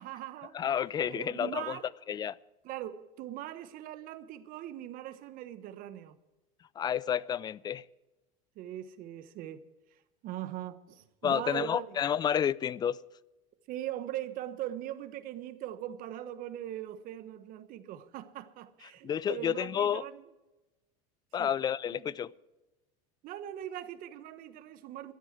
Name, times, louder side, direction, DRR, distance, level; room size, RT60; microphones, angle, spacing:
voice 1, 0.0-0.6 1.1-1.9 2.6-6.2 8.6-9.6 10.2-12.0 13.7-20.2 21.4-21.5 21.9-22.1 23.2-25.1, right 12 dB, 50° right, 1.2 m, -40 dB
voice 2, 0.5-1.8 2.1-2.4 6.8-7.8 11.2-13.0 19.0-20.0 21.3-22.3, left 9 dB, 20° left, 0.4 m, -30 dB
12.5 x 9.8 x 7.7 m
supercardioid pair, 125°, 18 cm